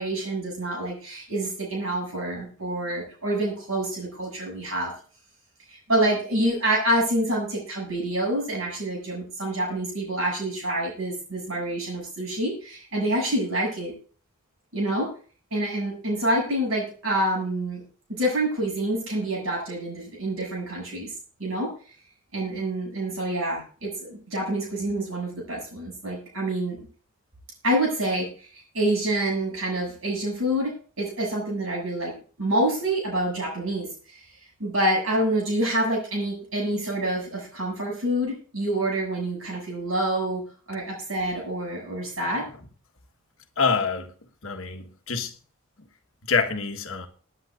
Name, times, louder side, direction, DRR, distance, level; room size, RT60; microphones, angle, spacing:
voice 1, 0.0-4.9 5.7-13.9 14.7-15.1 15.5-17.8 18.1-21.1 21.4-21.7 22.3-26.8 27.6-28.5 28.7-30.7 31.0-32.1 32.4-34.2 34.6-40.4 40.7-42.4, right 1 dB, 65° right, 7.4 m, -27 dB
voice 2, 43.6-44.1 44.4-45.4 46.2-47.1, left 5 dB, 65° left, 1.4 m, -26 dB
23.0 x 9.8 x 2.5 m
head